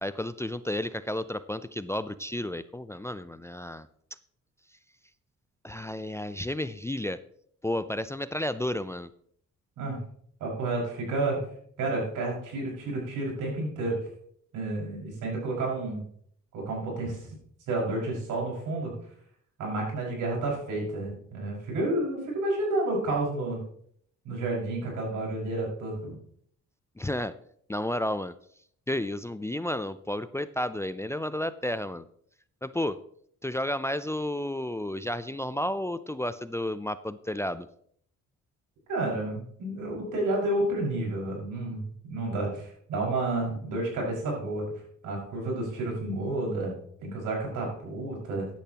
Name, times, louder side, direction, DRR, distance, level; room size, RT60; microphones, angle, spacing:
voice 1, 0.0-3.9 5.6-7.2 7.6-9.1 27.0-27.4 27.7-28.3 28.9-32.1 32.6-33.0 33.4-37.7, left 1 dB, 10° left, 14 dB, 0.4 m, -32 dB
voice 2, 10.4-11.4 11.8-14.0 14.5-16.0 16.5-17.3 17.7-18.9 19.6-23.6 24.2-26.2 38.9-44.7 45.0-48.5, right 2 dB, 85° right, -2 dB, 5.7 m, -30 dB
13.5 x 10.5 x 3.0 m, 0.63 s
cardioid pair, 90°, 30 cm